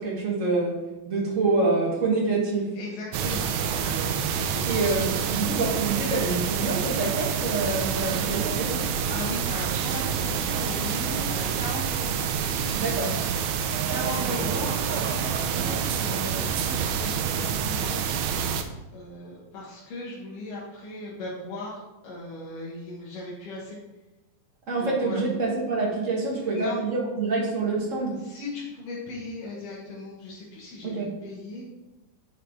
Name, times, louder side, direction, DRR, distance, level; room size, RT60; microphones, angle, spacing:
voice 1, 0.0-2.7 4.7-8.8 12.7-13.2 24.7-28.2 30.8-31.1, right 3 dB, 40° right, -3 dB, 1.1 m, -26 dB
voice 2, 2.7-4.8 9.1-12.1 13.9-18.0 18.9-23.8 24.8-25.2 26.5-26.8 28.2-31.6, left 2 dB, 85° left, -6 dB, 3.0 m, -37 dB
sound 1, 3.1-18.6, right 7 dB, 80° right, 1.8 m, -27 dB
9.9 x 4.7 x 3.6 m, 1.0 s
omnidirectional pair, 3.6 m